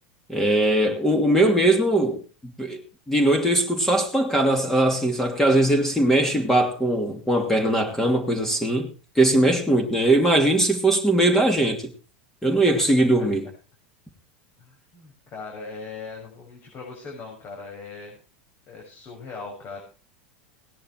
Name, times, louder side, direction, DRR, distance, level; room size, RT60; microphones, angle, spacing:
voice 1, 0.3-2.2 2.6-2.8 3.1-11.8 12.4-13.5, right 1 dB, 5° left, 2.8 m, -20 dB
voice 2, 14.6-18.2 18.7-19.8, left 4 dB, 35° left, 6.6 m, -39 dB
18.0 x 10.5 x 4.8 m
supercardioid pair, 130°, 6 cm